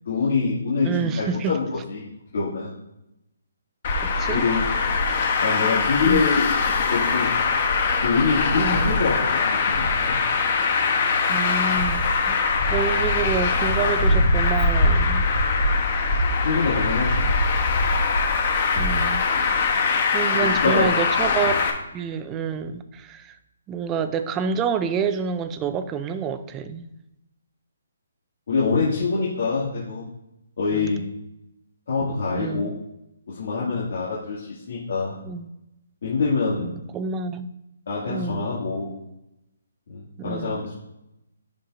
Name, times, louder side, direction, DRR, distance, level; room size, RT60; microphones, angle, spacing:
voice 1, 0.1-2.1 2.3-2.7 4.3-4.6 5.4-6.5 6.9-7.3 8.0-10.2 16.4-17.3 20.3-20.9 28.5-30.0 30.6-31.0 31.9-32.7 33.3-35.2 36.0-36.7 37.9-38.9 39.9-40.7, left 4 dB, 55° left, -8 dB, 2.1 m, -25 dB
voice 2, 0.8-1.6 4.0-4.5 6.0-6.3 8.5-8.9 11.3-12.4 12.7-15.2 18.7-21.5 21.9-23.3 23.7-26.9 30.7-31.1 32.3-32.7 35.2-35.5 36.6-37.5 38.1-38.5 40.2-40.6, right 6 dB, 15° right, 9 dB, 0.3 m, -28 dB
Traffic noise roadway noise, 3.8-21.7, left 4 dB, 35° left, 0.9 m, -22 dB
11.0 x 4.3 x 2.6 m, 0.88 s
hypercardioid pair, 170°, 0 cm